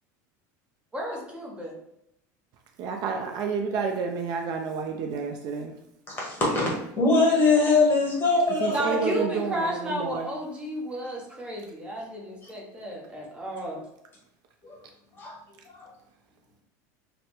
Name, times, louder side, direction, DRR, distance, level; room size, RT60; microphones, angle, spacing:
voice 1, 0.9-1.7 8.7-13.8, equal, 15° right, -3 dB, 0.8 m, -32 dB
voice 2, 2.8-5.8 8.6-10.3, right 5 dB, 50° right, 4 dB, 0.4 m, -30 dB
voice 3, 6.1-9.3 14.6-14.8 15.2-15.4 15.7-15.9, left 3 dB, 25° left, -4 dB, 1.2 m, -23 dB
3.2 x 2.0 x 2.9 m, 0.78 s
supercardioid pair, 125°, 9 cm